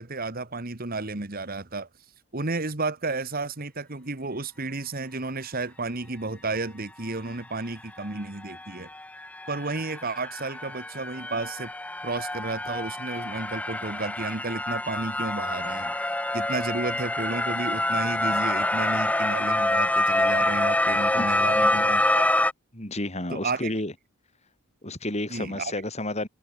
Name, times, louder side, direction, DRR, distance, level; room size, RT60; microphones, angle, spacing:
voice 1, 0.0-1.9 2.3-8.9 9.5-11.7 12.0-15.9 16.3-22.5 23.3-23.7 25.3-25.7, right 3 dB, 45° right, 1.6 m, -32 dB
sound 1, 8.0-8.1 8.4-22.5, left 1 dB, 5° left, 0.7 m, -26 dB
voice 2, 22.7-23.9 24.8-26.3, left 1 dB, 30° left, 4.8 m, -31 dB
head